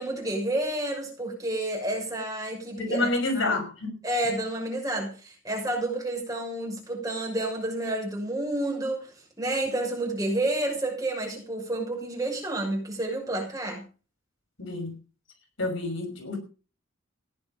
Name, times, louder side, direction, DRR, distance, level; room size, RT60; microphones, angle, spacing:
voice 1, 0.0-3.1 3.3-3.5 4.0-13.8, right 1 dB, 20° right, 6.1 m, -30 dB
voice 2, 2.8-3.9 14.6-14.9 15.6-16.4, left 2 dB, 75° left, 5.7 m, -28 dB
16.0 x 10.5 x 5.3 m
head